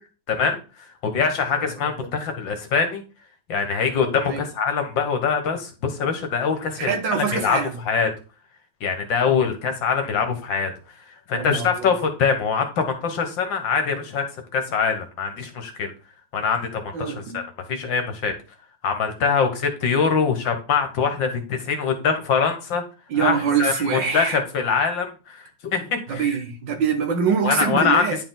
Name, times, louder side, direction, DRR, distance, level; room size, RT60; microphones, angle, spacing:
voice 1, 0.3-3.0 3.5-7.6 7.9-8.1 8.8-10.7 11.3-15.9 16.3-17.4 17.7-18.3 18.8-22.8 23.1-26.4 27.4-28.0, left 6 dB, 70° left, 2.0 m, -23 dB
voice 2, 6.8-7.8 11.3-11.7 16.9-17.4 23.1-24.4 26.1-28.2, right 6 dB, 65° right, 2.1 m, -24 dB
9.8 x 4.7 x 3.9 m
omnidirectional pair, 2.1 m